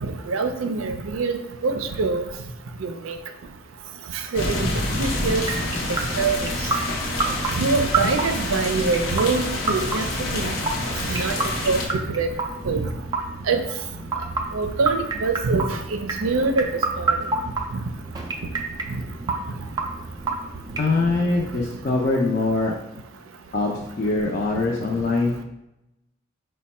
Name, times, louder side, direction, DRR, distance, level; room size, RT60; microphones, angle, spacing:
voice 1, 0.0-1.4 1.6-2.2 2.8-3.2 4.3-4.7 5.0-5.4 5.9-6.5 7.6-10.1 10.3-10.5 11.1-11.4 11.6-12.3 12.7-12.8 13.5-13.6 14.5-16.7 17.0-17.2, right 4 dB, 85° right, 7 dB, 0.5 m, -24 dB
sound 1, 4.3-11.9, left 1 dB, 75° left, 0.7 m, -27 dB
sound 2, 5.4-21.2, right 3 dB, 20° right, 0.3 m, -30 dB
voice 2, 20.8-22.8 23.5-25.4, left 3 dB, 40° left, -2 dB, 0.5 m, -23 dB
5.1 x 2.2 x 4.1 m, 0.89 s
head